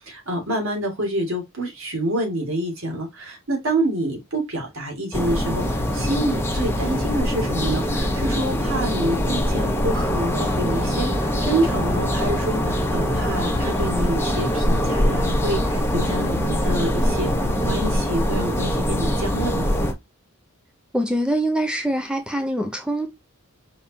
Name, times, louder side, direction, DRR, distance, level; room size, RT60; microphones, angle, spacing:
voice 1, 0.1-19.7, right 1 dB, 65° right, 2.1 m, -27 dB
sound 1, 5.1-19.9, equal, 10° left, 0.9 m, -23 dB
voice 2, 20.9-23.1, right 1 dB, 5° right, 0.5 m, -24 dB
5.0 x 3.5 x 2.7 m
head